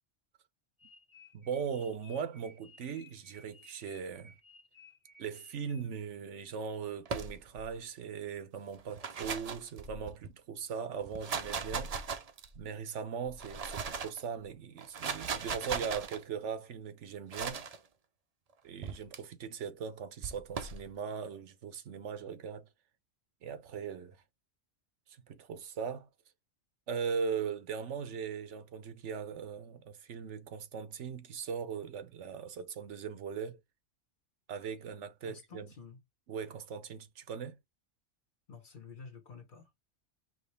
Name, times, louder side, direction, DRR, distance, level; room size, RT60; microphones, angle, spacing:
sound 1, 0.8-6.1, left 3 dB, 25° left, 1.2 m, -59 dB
voice 1, 1.3-4.4 5.2-12.0 12.5-17.7 18.6-22.7 23.4-24.2 25.1-26.1 26.9-33.6 34.5-35.7 36.3-37.6, right 6 dB, 85° right, 1.1 m, -39 dB
sound 2, 7.0-7.7 8.8-10.3 11.0-12.6 13.3-14.2 14.8-16.2 17.3-17.8 18.8-19.2 20.2-20.8, right 5 dB, 40° right, 0.6 m, -38 dB
voice 2, 35.2-36.0 38.5-39.7, left 5 dB, 50° left, 1.2 m, -50 dB
5.0 x 3.1 x 3.3 m
omnidirectional pair, 1.2 m